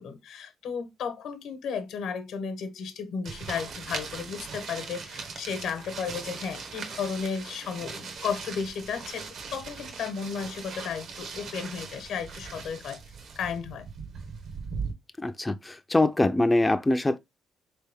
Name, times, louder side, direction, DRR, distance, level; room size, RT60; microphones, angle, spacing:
voice 1, 0.0-13.0 13.4-13.9, left 6 dB, 80° left, 0.9 m, -34 dB
sound 1, 3.3-14.9, right 5 dB, 70° right, 1.0 m, -39 dB
voice 2, 15.2-17.2, left 2 dB, 15° left, 0.3 m, -23 dB
3.6 x 3.3 x 3.4 m
cardioid pair, 90°, 0 cm